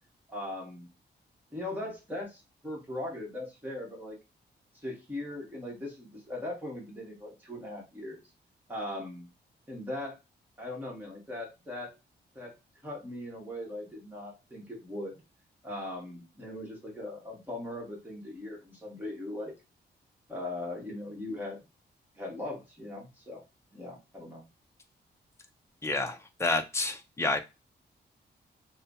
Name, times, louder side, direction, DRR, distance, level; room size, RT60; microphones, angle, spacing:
voice 1, 0.3-0.9 1.5-4.2 4.8-8.2 8.7-9.3 9.7-10.2 10.6-11.9 12.3-12.5 12.8-15.2 15.6-19.5 20.3-21.6 22.2-23.4 23.7-24.4, left 1 dB, 10° right, -3 dB, 1.4 m, -39 dB
voice 2, 25.8-27.4, left 2 dB, 15° left, 6 dB, 0.5 m, -29 dB
5.3 x 2.2 x 2.6 m, 0.26 s
wide cardioid pair, 155°, 18 cm